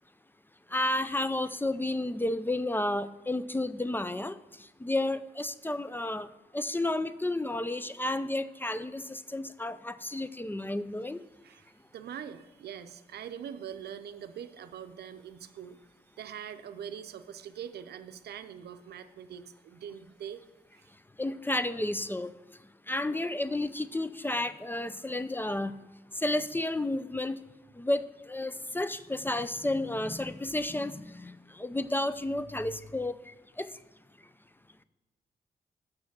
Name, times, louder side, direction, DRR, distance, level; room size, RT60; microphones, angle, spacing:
voice 1, 0.7-4.4 4.8-11.2 21.2-22.3 22.9-25.7 26.1-27.4 27.7-33.7, left 1 dB, 10° left, 14 dB, 0.4 m, -32 dB
voice 2, 11.4-15.8 16.2-20.4 20.7-20.9, right 8 dB, 85° right, 10 dB, 0.6 m, -43 dB
6.3 x 6.1 x 7.3 m, 1.1 s
cardioid pair, 65°, 16 cm